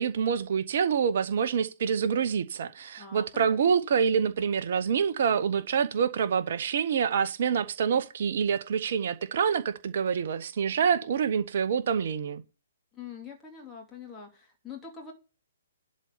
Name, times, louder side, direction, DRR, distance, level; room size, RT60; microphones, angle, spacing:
voice 1, 0.0-12.4, right 7 dB, 50° right, 0.8 m, -26 dB
voice 2, 3.0-3.7 12.9-15.1, left 6 dB, 10° left, 3.0 m, -44 dB
12.0 x 4.2 x 7.1 m
figure-of-eight pair, 125°, 0 cm